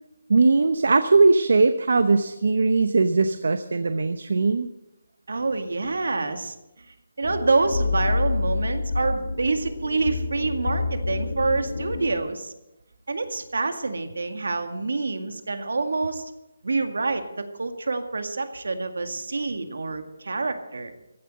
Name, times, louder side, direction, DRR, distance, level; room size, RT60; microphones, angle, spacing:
voice 1, 0.3-4.7, right 3 dB, 65° right, 10 dB, 0.8 m, -20 dB
voice 2, 5.3-6.6 7.2-12.5 13.1-16.3 16.6-20.9, right 3 dB, 80° right, 7 dB, 2.0 m, -27 dB
sound 1, 7.2-12.2, left 3 dB, 80° left, 2.1 m, -28 dB
15.5 x 9.3 x 7.7 m, 0.94 s
hypercardioid pair, 180°, 0 cm